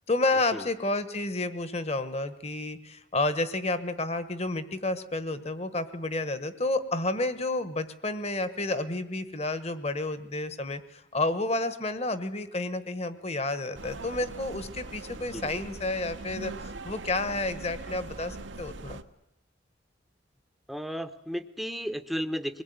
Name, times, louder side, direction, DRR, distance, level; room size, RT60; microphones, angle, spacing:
voice 1, 0.1-19.0, left 2 dB, 35° left, 12 dB, 1.3 m, -30 dB
sound 1, 13.7-19.0, right 2 dB, 80° right, 1.1 m, -41 dB
voice 2, 15.1-15.6 20.7-22.6, equal, ahead, 9 dB, 0.8 m, -34 dB
24.0 x 20.0 x 9.5 m, 0.90 s
head